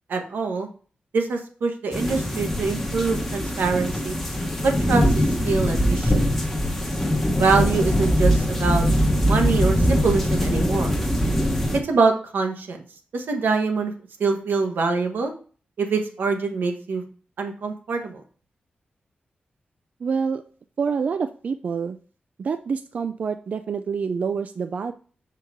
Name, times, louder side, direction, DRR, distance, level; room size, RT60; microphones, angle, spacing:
voice 1, 0.1-0.7 1.1-4.2 4.6-6.3 7.3-8.9 9.2-10.9 11.8-12.8 13.1-13.9 14.2-15.3 15.8-17.0 17.4-18.2, right 4 dB, 90° right, 4 dB, 1.1 m, -24 dB
sound 1, 1.9-11.8, equal, 10° left, 0.9 m, -22 dB
voice 2, 20.0-20.4 20.8-22.0 22.4-24.9, right 5 dB, 50° right, 8 dB, 0.3 m, -27 dB
6.8 x 4.6 x 3.6 m, 0.41 s
wide cardioid pair, 170°, 3 cm